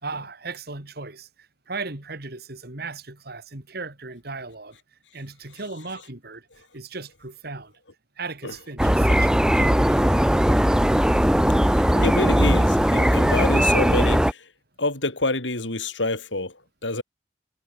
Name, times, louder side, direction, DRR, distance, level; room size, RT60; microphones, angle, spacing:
voice 1, 0.0-4.8 5.1-7.7 8.2-10.4, right 3 dB, 55° right, 3.1 m, -37 dB
sound 1, 8.8-14.3, equal, 5° right, 0.9 m, -19 dB
voice 2, 11.6-14.5 14.8-17.0, left 2 dB, 85° left, 5.1 m, -28 dB
head